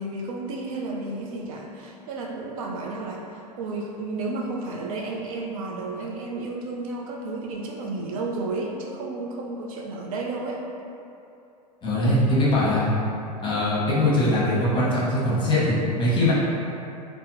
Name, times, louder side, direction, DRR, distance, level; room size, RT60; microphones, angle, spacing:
voice 1, 0.0-10.6, right 2 dB, 55° right, -1 dB, 0.4 m, -32 dB
voice 2, 11.8-12.9 13.4-16.3, left 1 dB, 20° left, -7 dB, 0.8 m, -21 dB
3.3 x 2.0 x 2.9 m, 2.7 s
figure-of-eight pair, 90°, 21 cm